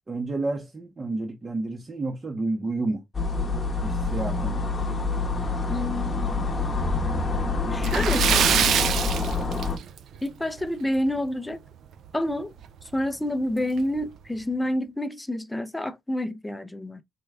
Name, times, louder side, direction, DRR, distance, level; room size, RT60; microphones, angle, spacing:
voice 1, 0.1-3.0 3.8-4.6, right 2 dB, 30° right, 0.6 m, -30 dB
sound 1, 3.1-9.8, left 3 dB, 30° left, 0.8 m, -26 dB
voice 2, 5.7-6.5 7.7-8.9 10.2-11.6 12.1-12.5 12.8-17.0, left 1 dB, 10° left, 0.4 m, -29 dB
Splash splatter, 7.8-10.2 10.5-10.7 11.1-11.2 12.6-12.7 13.1-13.2 13.8-14.0, right 9 dB, 70° right, 0.3 m, -24 dB
3.5 x 2.2 x 3.2 m
cardioid pair, 90°, 0 cm